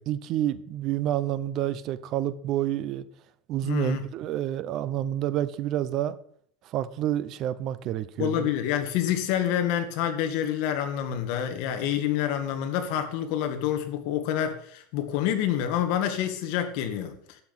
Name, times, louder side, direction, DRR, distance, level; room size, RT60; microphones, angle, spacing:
voice 1, 0.1-3.0 3.5-6.2 6.7-8.5, right 12 dB, 35° right, 0.8 m, -28 dB
voice 2, 3.6-4.0 8.2-17.4, left 10 dB, 55° left, 2.0 m, -27 dB
12.0 x 6.1 x 9.0 m
cardioid pair, 175°, 0 cm